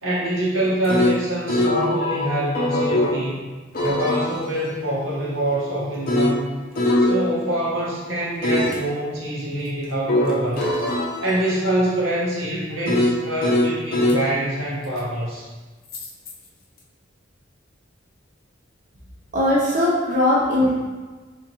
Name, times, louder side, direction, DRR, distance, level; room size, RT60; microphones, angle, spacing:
voice 1, 0.0-3.5 3.8-6.5 7.0-10.7 11.2-15.5, right 1 dB, 90° right, -7 dB, 1.3 m, -25 dB
sound 1, 0.6-3.2 3.7-7.8 8.4-8.8 10.1-14.2 15.9-16.3, left 1 dB, 45° left, 0.6 m, -23 dB
voice 2, 19.3-20.7, left 1 dB, 40° right, -6 dB, 0.7 m, -19 dB
3.6 x 3.6 x 2.9 m, 1.3 s
head